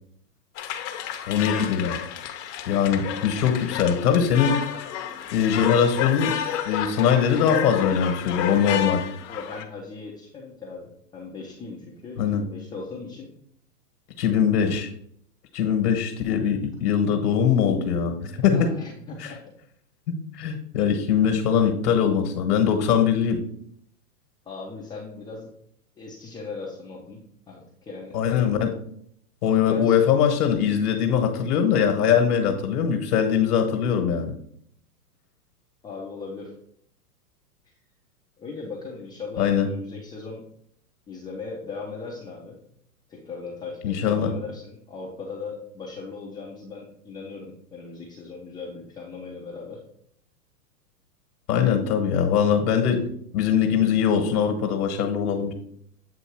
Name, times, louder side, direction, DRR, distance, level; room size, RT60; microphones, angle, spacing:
sound 1, 0.6-9.6, left 10 dB, 45° left, 0.8 m, -30 dB
voice 1, 1.3-2.0 2.7-4.6 5.3-6.3 6.6-9.0 12.2-12.4 14.2-14.9 15.5-18.7 19.2-19.3 20.1-23.4 28.1-28.7 29.4-34.3 39.4-39.7 43.8-44.3 51.5-55.5, left 7 dB, 70° left, 5 dB, 1.3 m, -22 dB
voice 2, 9.3-13.3 18.5-19.4 24.5-25.5 25.9-27.2 27.5-28.2 29.7-30.0 35.8-36.5 38.4-40.4 41.1-42.6 43.1-49.8, left 4 dB, 10° left, -4 dB, 0.5 m, -38 dB
8.0 x 2.7 x 4.5 m, 0.66 s
hypercardioid pair, 125°, 47 cm